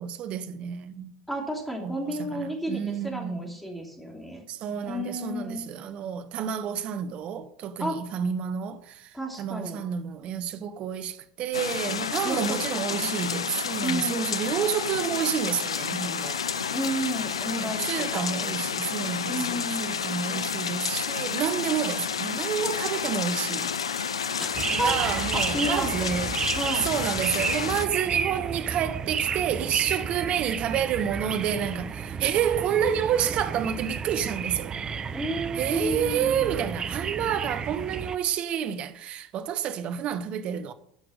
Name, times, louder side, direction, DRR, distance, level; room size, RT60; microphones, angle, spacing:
voice 1, 0.0-1.2 1.8-3.5 4.5-16.4 17.5-23.7 24.7-26.4 26.8-34.8 35.6-40.7, right 8 dB, 45° right, 1.1 m, -29 dB
voice 2, 1.3-4.4 4.8-5.6 7.8-8.0 9.1-9.8 12.2-12.6 12.9-13.3 13.8-14.4 16.7-18.3 19.3-20.0 24.4-26.1 26.5-27.0 35.1-36.5, right 1 dB, ahead, 2.9 m, -32 dB
sound 1, 11.5-27.9, left 7 dB, 85° left, 0.5 m, -30 dB
sound 2, 24.5-38.2, right 6 dB, 25° right, 0.7 m, -32 dB
11.5 x 6.0 x 6.5 m
hypercardioid pair, 80°, 3 cm